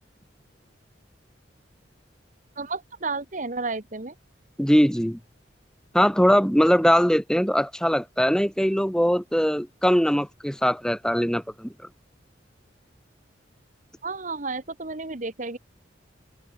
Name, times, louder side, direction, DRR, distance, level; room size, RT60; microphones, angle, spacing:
voice 1, 2.6-4.1 14.0-15.6, right 3 dB, 40° right, 1.4 m, -32 dB
voice 2, 4.6-5.2 5.9-11.7, equal, 5° left, 7.5 m, -21 dB
open air
head